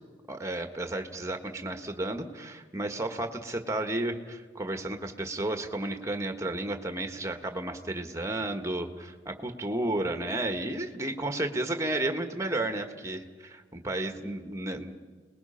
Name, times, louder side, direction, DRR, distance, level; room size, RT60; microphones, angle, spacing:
voice 1, 0.3-15.0, right 1 dB, 15° right, 6 dB, 1.6 m, -32 dB
30.0 x 20.5 x 5.8 m, 1.5 s
head